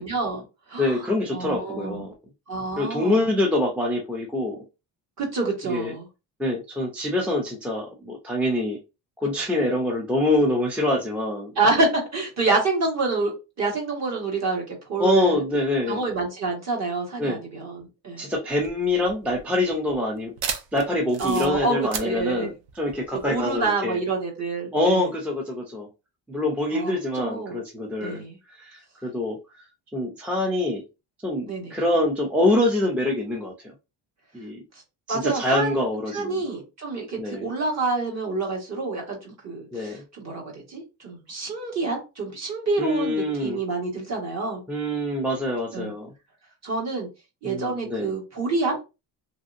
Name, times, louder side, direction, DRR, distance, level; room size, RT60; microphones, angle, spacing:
voice 1, 0.0-2.1 2.5-3.2 5.2-6.1 11.5-13.3 13.6-15.4 15.9-18.3 21.2-22.5 23.2-25.1 26.7-27.6 28.0-28.4 31.5-31.8 35.1-35.8 36.1-44.6 45.7-45.9 46.6-47.1 47.4-48.8, right 3 dB, 40° right, 1.3 m, -27 dB
voice 2, 0.8-2.1 2.8-4.6 5.7-5.9 6.4-8.8 9.2-11.5 15.0-16.0 17.2-17.4 18.2-20.3 20.7-24.0 24.7-25.9 26.3-28.2 28.5-29.4 29.9-30.8 31.2-33.7 34.3-34.6 35.1-36.4 37.2-37.5 39.7-40.0 42.8-43.6 44.7-46.1 47.4-48.1, left 1 dB, 5° right, 0.4 m, -25 dB
sound 1, 18.5-23.7, right 6 dB, 60° right, 0.6 m, -35 dB
3.1 x 2.7 x 2.5 m
cardioid pair, 165°, 41 cm